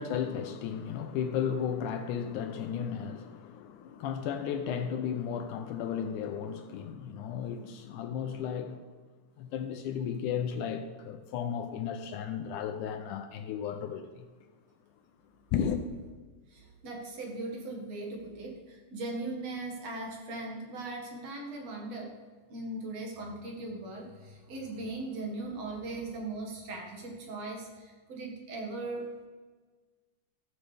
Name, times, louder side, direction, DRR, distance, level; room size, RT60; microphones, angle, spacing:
voice 1, 0.0-8.8 9.4-14.3 15.5-15.9, left 8 dB, 80° left, 1.9 m, -34 dB
voice 2, 16.5-22.1 22.5-29.3, right 2 dB, 55° right, 2.7 m, -39 dB
14.0 x 7.8 x 3.4 m
omnidirectional pair, 4.0 m